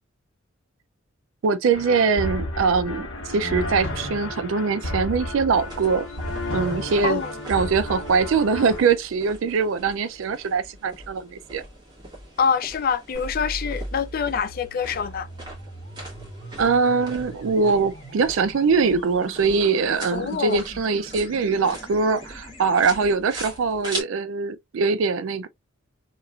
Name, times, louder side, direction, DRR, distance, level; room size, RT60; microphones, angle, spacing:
voice 1, 1.4-6.1 6.5-7.2 7.5-11.6 16.6-25.5, right 5 dB, 70° right, 0.4 m, -22 dB
sound 1, 1.7-8.8, left 1 dB, 70° left, 1.0 m, -32 dB
sound 2, 5.5-24.0, right 1 dB, 20° right, 1.3 m, -41 dB
voice 2, 12.4-15.3 20.1-20.6, left 6 dB, 45° left, 0.3 m, -25 dB
sound 3, 13.1-23.1, right 1 dB, 25° left, 1.1 m, -40 dB
3.0 x 2.4 x 2.3 m
head